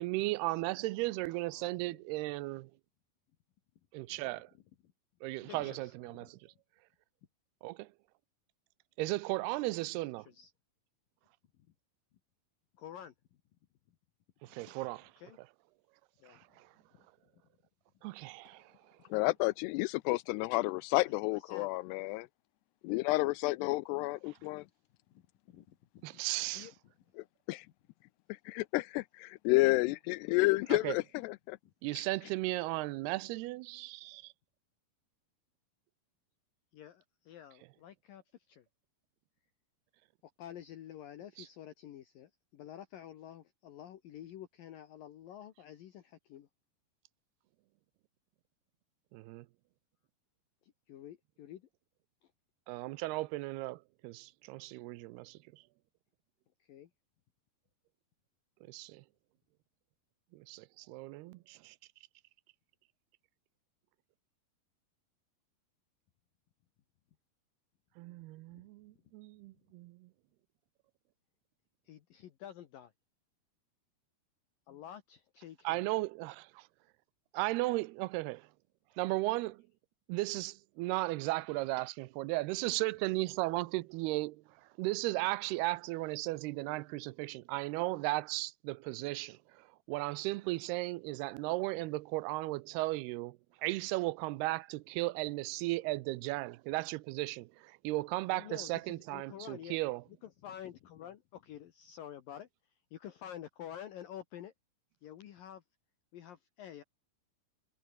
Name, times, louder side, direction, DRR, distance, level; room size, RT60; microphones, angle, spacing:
voice 1, 0.0-2.7 3.9-4.5 5.2-6.5 7.6-7.9 9.0-10.3 14.4-15.1 16.3-16.7 18.0-18.7 26.2-26.6 30.8-31.0 31.8-34.3 41.4-41.5 49.1-49.5 52.7-55.6 58.7-59.0 60.3-61.8 68.0-70.1 75.6-76.7 77.3-78.5 79.0-79.6 80.1-84.4 84.8-100.0, right 20 dB, 85° right, 2.7 m, -36 dB
voice 2, 1.5-2.0 5.4-5.9 6.2-6.3 9.5-9.6 10.3-10.5 12.8-13.1 14.6-14.7 15.2-15.4 16.2-16.4 21.3-21.8 25.1-25.8 26.4-26.7 36.7-38.2 38.5-38.6 40.4-46.5 50.6-51.7 56.7-56.9 68.5-68.6 71.9-72.9 74.7-75.8 98.3-99.8 100.2-102.5 102.9-104.5 105.0-105.6 106.1-106.8, left 10 dB, 65° left, 2.9 m, -49 dB
voice 3, 19.1-22.3 22.8-24.7 27.5-27.6 28.5-31.6, left 22 dB, 90° left, 2.7 m, -30 dB
omnidirectional pair, 4.8 m